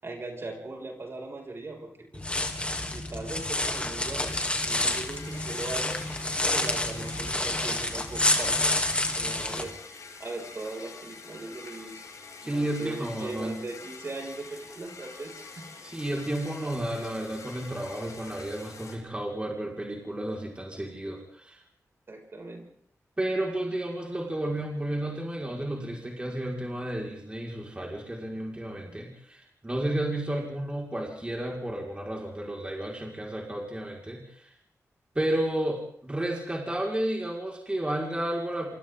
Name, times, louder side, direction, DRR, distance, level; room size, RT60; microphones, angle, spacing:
voice 1, 0.0-2.3 2.9-6.0 6.4-8.7 9.2-9.8 10.2-12.1 12.4-15.8 22.1-22.7, right 2 dB, 45° right, 0 dB, 6.7 m, -39 dB
sound 1, 2.1-9.6, left 2 dB, 20° left, 3.1 m, -28 dB
sound 2, 4.2-19.0, left 4 dB, 75° left, 6.8 m, -46 dB
voice 2, 12.4-13.6 15.8-21.6 23.2-34.5 35.2-38.7, right 1 dB, 20° right, -1 dB, 5.5 m, -32 dB
27.0 x 27.0 x 4.0 m, 0.62 s
wide cardioid pair, 80°, 6 cm